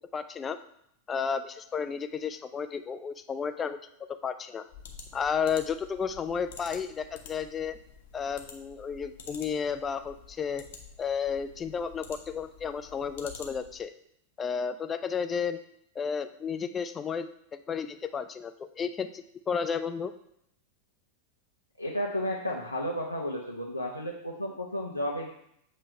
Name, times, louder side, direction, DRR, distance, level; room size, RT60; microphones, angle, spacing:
voice 1, 0.1-0.6 1.1-3.8 4.1-4.6 5.1-7.8 8.1-10.6 11.0-13.9 14.4-15.6 16.0-20.1, left 6 dB, 20° left, 10 dB, 0.4 m, -32 dB
sound 1, 4.7-13.8, left 6 dB, 55° left, 1.0 m, -49 dB
voice 2, 21.8-25.3, equal, 85° left, -3 dB, 0.7 m, -33 dB
7.5 x 3.3 x 5.2 m, 0.73 s
figure-of-eight pair, 90°, 0 cm